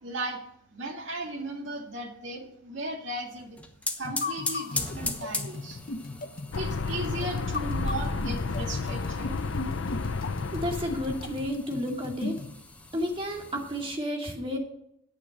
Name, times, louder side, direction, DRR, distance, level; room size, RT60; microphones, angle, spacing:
voice 1, 0.0-0.4 0.7-3.6 4.0-5.8 6.6-9.4, right 2 dB, 70° right, 1 dB, 2.1 m, -36 dB
sound 1, 3.4-14.0, left 2 dB, 5° left, 1.1 m, -39 dB
sound 2, 4.0-12.5, left 3 dB, 50° left, 0.7 m, -37 dB
sound 3, 6.5-11.5, left 3 dB, 80° left, 0.7 m, -32 dB
voice 2, 10.5-12.4 12.9-14.6, equal, 30° right, 1 dB, 2.5 m, -31 dB
9.9 x 8.6 x 6.4 m, 0.73 s
head